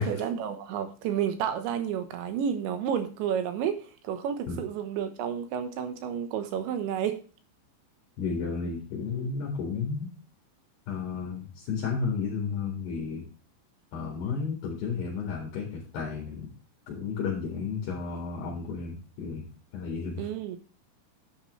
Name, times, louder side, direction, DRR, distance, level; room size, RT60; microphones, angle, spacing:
voice 1, 0.0-7.2 20.2-20.6, right 8 dB, 75° right, 3.2 m, -31 dB
voice 2, 8.2-10.1 10.9-13.2 13.9-16.5 16.9-19.4 19.7-20.3, left 5 dB, 65° left, 3.8 m, -32 dB
10.5 x 9.6 x 3.2 m
omnidirectional pair, 5.6 m